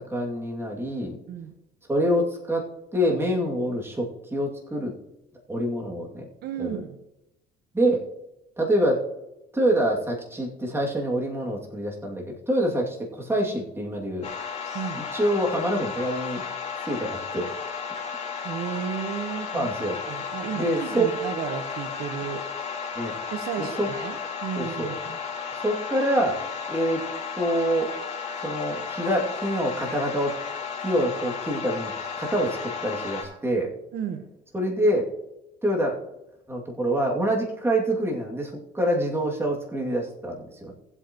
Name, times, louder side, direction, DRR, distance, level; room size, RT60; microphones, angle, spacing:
voice 1, 0.1-1.2 1.9-5.0 5.5-6.3 6.6-6.8 7.7-8.1 8.6-9.0 9.5-14.3 15.1-16.4 16.9-17.5 19.5-20.0 20.5-21.1 22.9-23.2 23.6-23.9 24.6-24.9 25.6-26.4 26.7-27.1 27.3-27.9 28.4-30.3 30.8-31.9 32.2-33.7 34.5-35.1 35.6-36.0 36.5-40.7, right 1 dB, 15° right, -1 dB, 2.4 m, -26 dB
voice 2, 6.4-6.9 14.7-15.0 18.4-19.7 20.1-22.4 23.3-25.2 33.9-34.2, right 8 dB, 75° right, 6 dB, 1.2 m, -33 dB
sound 1, 14.2-33.2, left 6 dB, 40° left, 4.1 m, -34 dB
19.0 x 8.1 x 3.0 m, 0.92 s
cardioid pair, 110°, 17 cm